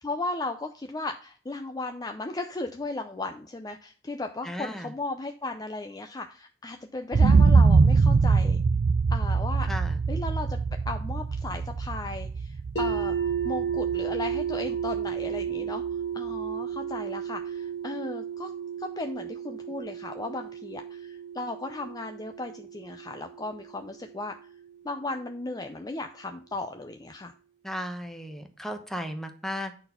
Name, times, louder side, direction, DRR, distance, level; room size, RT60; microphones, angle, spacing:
voice 1, 0.0-8.6 9.1-9.7 10.1-10.6 10.9-13.2 13.4-15.8 16.1-18.5 18.8-24.5 24.8-27.3, left 2 dB, 20° left, 5 dB, 0.5 m, -36 dB
voice 2, 4.4-4.9 9.7-10.0 27.6-29.7, equal, ahead, 5 dB, 1.0 m, -35 dB
sound 1, 7.1-15.0 15.4-15.5, right 4 dB, 65° right, 0.4 m, -23 dB
sound 2, 12.8-24.7, right 8 dB, 85° left, 2.3 m, -33 dB
9.0 x 4.2 x 5.6 m, 0.40 s
head